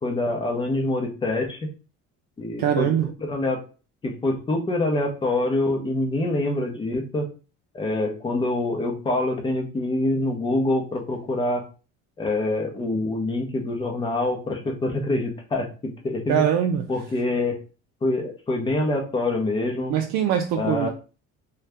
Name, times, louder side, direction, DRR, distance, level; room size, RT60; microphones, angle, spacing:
voice 1, 0.0-1.7 2.4-2.9 3.2-3.6 4.0-7.3 7.7-11.6 12.2-16.4 16.9-17.6 18.0-19.9 20.5-20.9, left 2 dB, 15° left, 2 dB, 0.6 m, -25 dB
voice 2, 2.6-3.1 16.3-16.9 19.9-20.9, right 9 dB, 70° right, 3 dB, 0.5 m, -22 dB
2.7 x 2.3 x 3.3 m, 0.35 s
cardioid pair, 150°, 29 cm